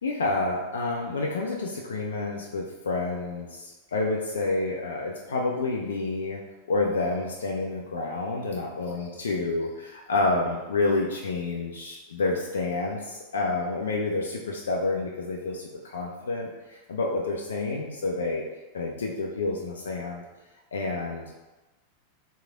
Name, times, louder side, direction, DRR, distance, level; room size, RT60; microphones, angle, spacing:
voice 1, 0.0-6.4 6.7-16.5 16.9-18.4 18.7-20.2 20.7-21.4, left 3 dB, 65° left, -1 dB, 0.3 m, -29 dB
3.0 x 2.7 x 2.4 m, 1.1 s
figure-of-eight pair, 90°, 0 cm